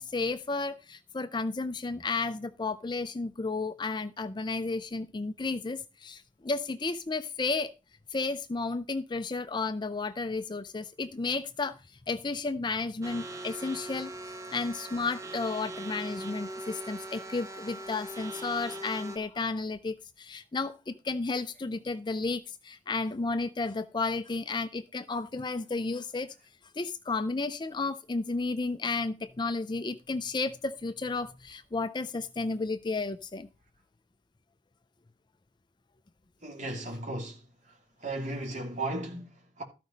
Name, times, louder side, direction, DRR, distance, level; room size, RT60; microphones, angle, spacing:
voice 1, 0.0-7.7 8.1-11.8 12.1-14.1 14.5-26.3 26.8-33.5, left 3 dB, 25° left, 0.5 m, -32 dB
sound 1, 13.0-19.2, right 1 dB, 15° right, 0.9 m, -40 dB
voice 2, 36.4-37.4 38.0-39.6, right 2 dB, 40° right, 2.9 m, -35 dB
13.5 x 5.0 x 5.3 m
head